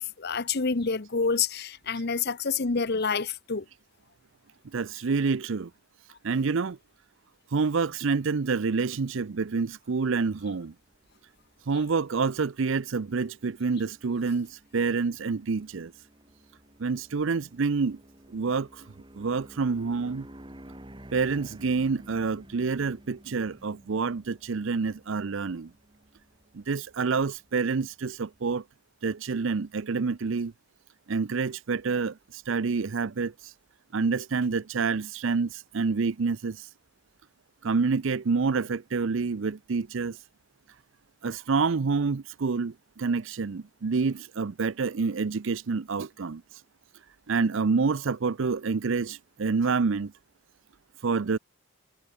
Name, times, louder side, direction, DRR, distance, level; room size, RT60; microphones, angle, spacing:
voice 1, 0.0-3.6, left 5 dB, 50° left, 0.9 m, -28 dB
voice 2, 4.7-5.7 6.2-6.8 7.5-10.7 11.7-15.9 16.8-18.0 18.3-18.9 19.2-20.3 21.1-25.7 26.5-28.6 29.0-30.5 31.1-33.5 33.9-36.7 37.6-40.2 41.2-46.6 47.3-50.1 51.0-51.4, right 4 dB, 60° right, 0.5 m, -28 dB
sound 1, 9.3-28.6, right 1 dB, 20° right, 2.6 m, -53 dB
head